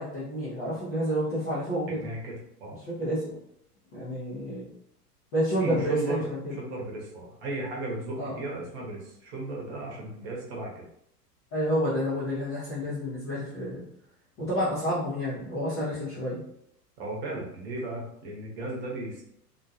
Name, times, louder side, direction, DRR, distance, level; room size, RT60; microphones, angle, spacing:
voice 1, 0.0-2.1 2.9-3.2 3.9-4.7 5.3-6.5 8.2-8.4 11.5-13.8 14.4-16.4, equal, 15° left, -11 dB, 0.3 m, -29 dB
voice 2, 1.9-2.8 5.6-6.2 6.6-10.8 17.0-19.2, right 2 dB, 40° right, -2 dB, 0.9 m, -35 dB
2.5 x 2.2 x 2.6 m, 0.73 s
figure-of-eight pair, 95°, 47 cm